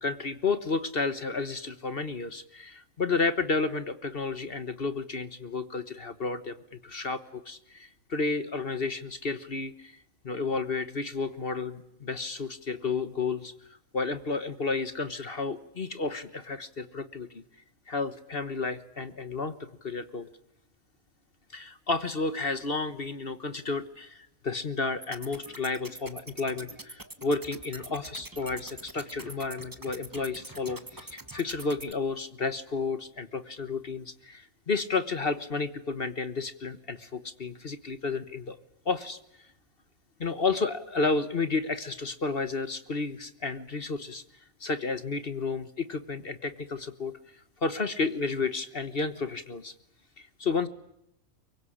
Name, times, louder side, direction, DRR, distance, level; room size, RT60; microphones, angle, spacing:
voice 1, 0.0-9.9 10.2-13.5 13.9-17.4 17.9-19.5 19.8-20.3 21.5-38.6 38.8-39.2 40.2-44.2 44.6-47.2 47.6-49.7 50.2-50.7, left 4 dB, 40° left, 12 dB, 1.4 m, -31 dB
sound 1, 25.0-31.9, right 2 dB, 15° right, 1.6 m, -45 dB
24.0 x 23.5 x 10.0 m, 0.79 s
omnidirectional pair, 1.5 m